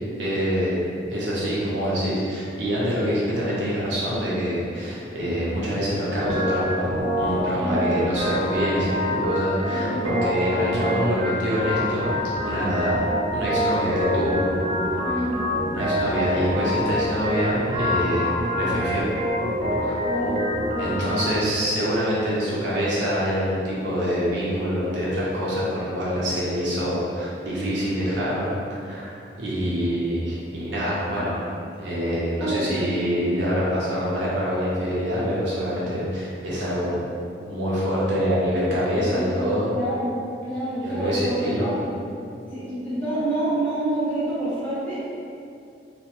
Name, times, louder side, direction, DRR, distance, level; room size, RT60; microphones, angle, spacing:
voice 1, 0.2-12.1 12.4-14.4 14.9-15.3 15.7-19.1 19.8-20.0 20.8-29.1 29.4-31.4 31.8-37.0 37.4-39.7 40.8-41.7, equal, 75° right, -8 dB, 0.8 m, -25 dB
Organ, 6.3-21.3, equal, 35° right, 0.3 m, -26 dB
voice 2, 7.5-7.9 9.7-10.0 15.0-15.5 20.0-20.3 20.7-21.5 32.4-32.8 38.7-39.4 39.7-41.8 42.5-45.2, right 1 dB, 5° left, -11 dB, 0.7 m, -28 dB
sound 1, 11.6-21.3, left 1 dB, 55° left, 1.1 m, -41 dB
3.0 x 2.0 x 3.0 m, 2.5 s
head